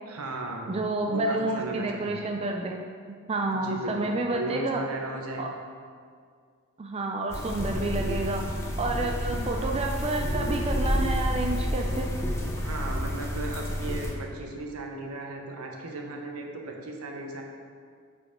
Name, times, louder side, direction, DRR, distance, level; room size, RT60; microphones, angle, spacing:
voice 1, 0.1-0.8 1.1-2.2 3.5-5.6 9.3-9.5 12.5-17.4, right 2 dB, 75° right, 1 dB, 1.0 m, -36 dB
voice 2, 0.7-2.8 3.3-4.8 5.4-5.5 6.8-12.1, right 2 dB, 25° right, 2 dB, 0.4 m, -29 dB
sound 1, 7.3-14.1, equal, 15° left, 0.9 m, -29 dB
9.3 x 5.0 x 3.7 m, 2.1 s
head